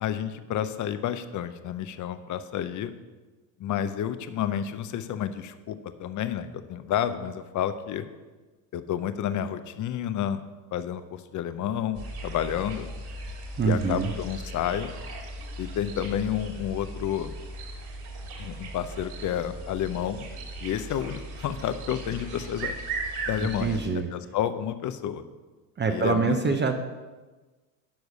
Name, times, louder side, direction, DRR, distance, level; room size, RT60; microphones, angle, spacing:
voice 1, 0.0-2.9 3.6-8.1 8.7-10.4 10.7-12.9 13.6-14.9 15.6-17.3 18.4-20.3 20.6-22.7 23.3-25.2 25.9-26.6, left 10 dB, 35° left, 11 dB, 0.7 m, -30 dB
sound 1, 11.9-23.9, right 2 dB, 50° right, 2.6 m, -38 dB
voice 2, 13.6-14.1 23.6-24.1 25.8-26.7, right 4 dB, 20° right, 5 dB, 0.7 m, -25 dB
12.0 x 4.7 x 5.4 m, 1.3 s
supercardioid pair, 100°, 50 cm